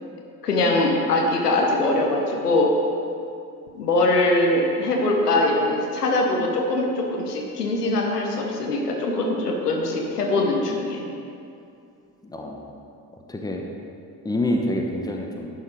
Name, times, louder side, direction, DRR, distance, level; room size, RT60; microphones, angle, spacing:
voice 1, 0.4-2.7 3.7-11.1, left 2 dB, 80° left, 0 dB, 1.0 m, -22 dB
voice 2, 12.2-12.7 13.3-13.7 14.2-15.5, left 1 dB, 10° left, 1 dB, 1.0 m, -27 dB
11.0 x 4.6 x 4.9 m, 2.6 s
figure-of-eight pair, 50°, 46 cm